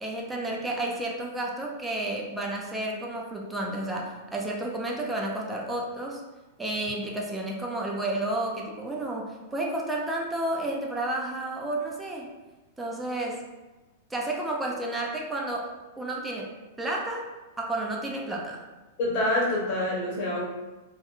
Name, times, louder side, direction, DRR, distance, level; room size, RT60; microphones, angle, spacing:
voice 1, 0.0-6.2 6.6-12.3 12.8-13.4 14.1-16.5 16.8-17.3 17.6-18.6, right 1 dB, 10° right, -1 dB, 0.4 m, -31 dB
voice 2, 19.0-20.4, left 1 dB, 50° left, -4 dB, 0.9 m, -26 dB
2.2 x 2.2 x 2.9 m, 1.1 s
hypercardioid pair, 120°, 0 cm